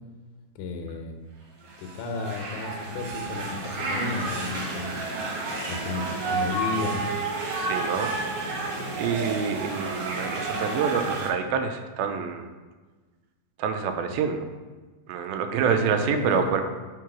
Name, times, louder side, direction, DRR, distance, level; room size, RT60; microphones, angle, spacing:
voice 1, 0.6-1.1 1.8-5.0 5.7-7.0 15.7-16.5, left 4 dB, 80° left, 4 dB, 2.5 m, -33 dB
sound 1, 1.7-11.3, right 3 dB, 60° right, 2.8 m, -31 dB
voice 2, 7.5-8.1 9.0-12.5 13.6-14.5 15.1-16.6, right 6 dB, 85° right, 6 dB, 2.5 m, -27 dB
5.8 x 4.6 x 5.9 m, 1.3 s
omnidirectional pair, 4.3 m